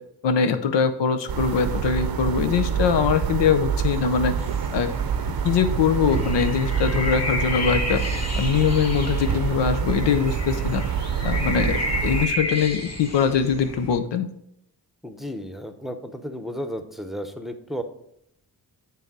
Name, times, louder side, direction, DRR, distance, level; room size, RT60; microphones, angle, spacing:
voice 1, 0.2-4.3 4.7-4.9 5.4-8.0 8.4-10.8 11.2-14.3, left 7 dB, 90° left, 9 dB, 0.6 m, -22 dB
sound 1, 1.3-12.3, right 7 dB, 60° right, 0.6 m, -26 dB
sound 2, 4.4-14.0, left 1 dB, 40° left, 1.2 m, -32 dB
voice 2, 15.0-17.8, equal, ahead, 6 dB, 0.7 m, -33 dB
6.9 x 3.4 x 6.0 m, 0.76 s
cardioid pair, 50°, 42 cm